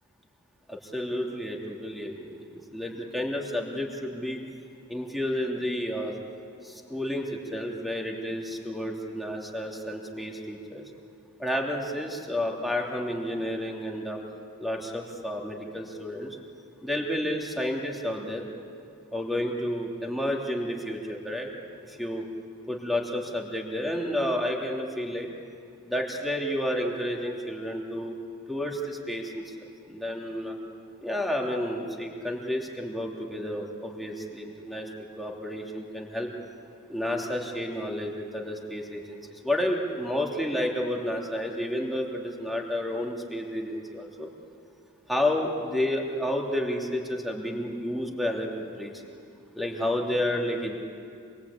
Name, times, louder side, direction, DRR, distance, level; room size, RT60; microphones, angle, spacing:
voice 1, 0.7-4.4 4.9-6.1 6.9-10.8 11.4-14.2 14.6-16.3 16.8-18.4 19.1-21.5 22.0-22.2 22.7-25.3 25.8-28.2 28.5-29.4 29.9-30.5 31.0-36.3 36.9-39.2 39.4-44.3 45.1-48.9 49.5-50.8, left 1 dB, ahead, -1 dB, 2.8 m, -31 dB
27.0 x 22.0 x 8.5 m, 2.4 s
head